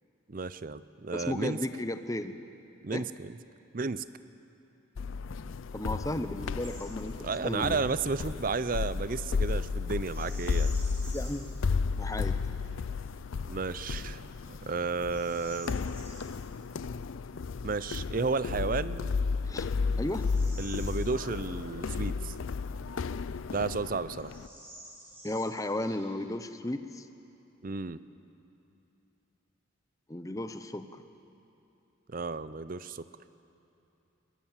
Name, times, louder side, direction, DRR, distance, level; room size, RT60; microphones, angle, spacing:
voice 1, 0.3-1.6 2.8-3.4 3.7-4.0 7.2-10.7 13.5-14.2 14.5-15.7 17.6-19.1 20.6-22.3 23.5-24.3 27.6-28.0 32.1-33.0, right 4 dB, 40° right, 15 dB, 0.5 m, -32 dB
voice 2, 1.1-2.4 2.9-3.0 5.7-7.8 11.1-11.6 12.0-12.4 19.4-20.3 25.2-27.1 30.1-30.9, left 1 dB, 15° left, 9 dB, 0.7 m, -34 dB
sound 1, 5.0-24.5, left 4 dB, 75° left, 0.5 m, -33 dB
Bird vocalization bird call bird song, 6.6-6.9 7.2-7.5 10.0-11.5 12.1-12.2 12.8-13.2 13.7-13.8 14.4-16.3 18.4-18.5 19.1-21.6 21.9-22.0 22.7-23.5 23.8-23.9 24.1-26.3, right 1 dB, 10° right, 5.0 m, -51 dB
21.5 x 21.0 x 7.4 m, 2.9 s
head